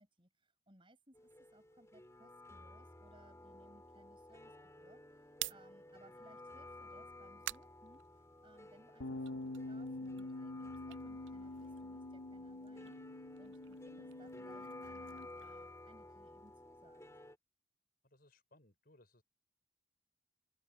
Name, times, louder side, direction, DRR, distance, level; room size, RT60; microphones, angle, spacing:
voice 1, 0.0-17.0, right 1 dB, 25° right, 7.7 m, -65 dB
sound 1, 1.1-17.4, left 2 dB, 15° left, 3.4 m, -54 dB
sound 2, 5.2-8.7 9.1-12.1 12.3-16.5, right 15 dB, 60° right, 0.4 m, -51 dB
sound 3, 9.0-15.2, left 2 dB, 85° left, 1.8 m, -46 dB
voice 2, 18.0-19.2, left 1 dB, 45° left, 5.0 m, -66 dB
open air
head